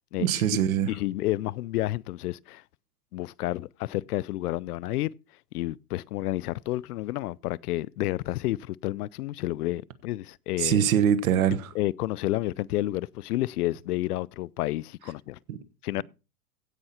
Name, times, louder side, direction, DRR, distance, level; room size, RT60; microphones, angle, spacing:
voice 1, 0.2-0.9 10.6-11.7 15.5-15.6, right 9 dB, 60° right, 1.4 m, -23 dB
voice 2, 0.9-2.6 3.1-5.1 5.5-10.8 11.7-15.4 15.8-16.0, left 16 dB, 75° left, 0.6 m, -30 dB
16.0 x 5.8 x 4.3 m
supercardioid pair, 175°, 46 cm